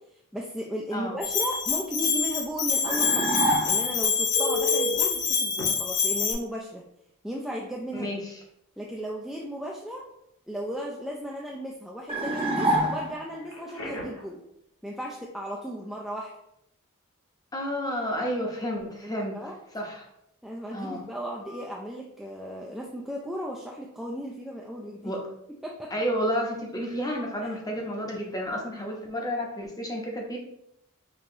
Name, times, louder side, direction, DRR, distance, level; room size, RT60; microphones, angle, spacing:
voice 1, 0.3-3.2 3.6-6.8 7.2-8.1 8.8-10.0 10.5-14.4 14.8-16.3 19.0-19.5 20.4-25.1 25.6-25.9 27.4-27.6, equal, ahead, -3 dB, 0.3 m, -35 dB
Bell, 1.2-6.3, left 6 dB, 50° left, 0.7 m, -26 dB
sound 1, 2.9-4.0 12.1-13.4, right 1 dB, 25° right, 0.7 m, -26 dB
Telephone, 4.3-5.0 5.6-5.7 7.4-7.6 8.0-8.2 13.4-14.3 21.4-21.6, left 1 dB, 90° left, 1.2 m, -32 dB
voice 2, 7.9-8.4 17.5-19.4 19.7-20.1 20.7-21.1 25.0-25.2 25.9-30.4, equal, 15° left, 1 dB, 0.7 m, -31 dB
5.2 x 2.9 x 2.7 m, 0.78 s
head